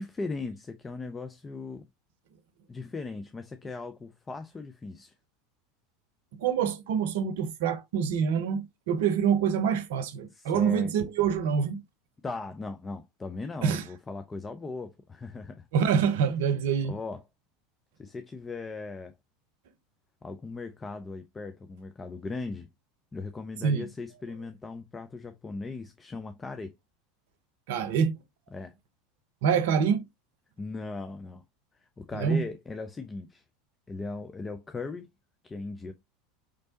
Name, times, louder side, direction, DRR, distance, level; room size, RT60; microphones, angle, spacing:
voice 1, 0.0-1.8 2.7-5.1 10.3-10.9 12.2-15.6 16.8-17.2 18.0-19.1 20.2-22.7 23.1-26.7 28.5-28.7 30.6-31.4 32.0-33.4 33.9-35.1 35.4-35.9, left 3 dB, 20° left, 0.6 m, -38 dB
voice 2, 6.3-11.8 13.6-13.8 15.7-17.0 23.6-23.9 27.7-28.2 29.4-30.1 32.1-32.4, right 7 dB, 65° right, 0.7 m, -26 dB
5.2 x 3.3 x 2.8 m
figure-of-eight pair, 80°, 0 cm